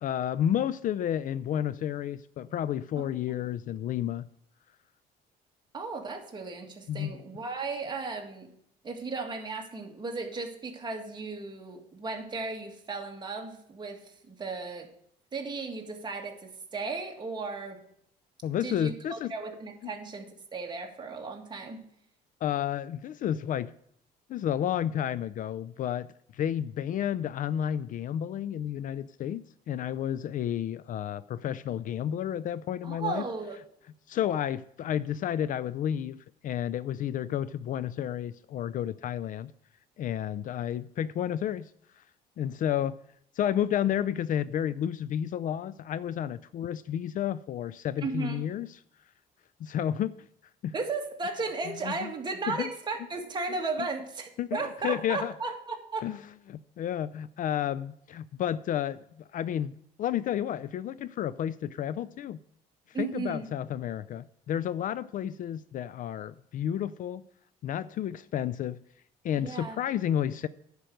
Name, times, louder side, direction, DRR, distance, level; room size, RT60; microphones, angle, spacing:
voice 1, 0.0-4.3 6.9-7.2 18.4-19.3 19.8-19.9 22.4-23.7 24.3-26.1 26.3-33.2 34.1-39.5 40.0-41.7 42.4-43.0 43.4-48.7 49.6-50.1 50.6-50.7 51.8-52.1 52.5-52.7 54.4-55.3 56.0-56.2 56.5-59.0 59.3-59.7 60.0-62.4 63.0-67.2 67.6-68.8 69.2-70.5, left 10 dB, 50° left, 0.4 m, -31 dB
voice 2, 5.7-8.5 8.8-14.9 15.3-17.8 18.6-21.8 32.8-33.6 48.0-48.4 50.7-56.1 62.9-63.5 69.4-69.8, right 4 dB, 25° right, 1.9 m, -35 dB
10.5 x 5.2 x 7.8 m
cardioid pair, 110°, 17 cm